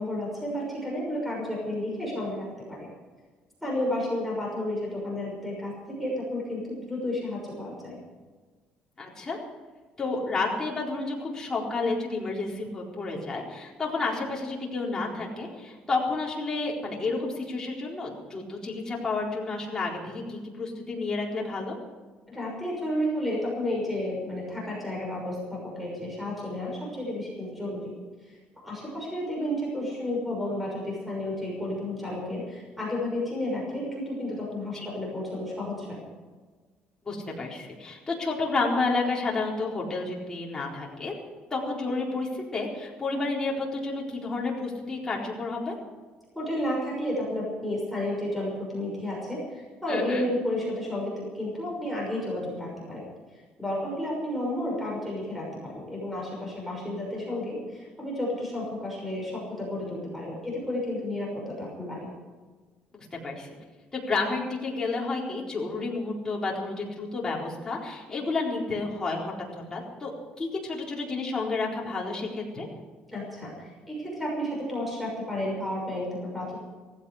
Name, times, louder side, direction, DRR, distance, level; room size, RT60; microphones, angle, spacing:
voice 1, 0.0-2.9 3.6-5.7 6.0-8.0 22.3-27.9 28.2-36.0 46.3-53.1 53.6-62.1 73.1-76.6, left 1 dB, ahead, -3 dB, 6.1 m, -32 dB
voice 2, 9.0-9.4 10.0-21.8 37.0-41.1 41.5-45.7 49.9-50.3 63.1-63.5 63.9-70.1 70.4-72.7, left 3 dB, 20° left, -3 dB, 4.2 m, -30 dB
17.0 x 16.0 x 5.0 m, 1.4 s
cardioid pair, 155°, 3 cm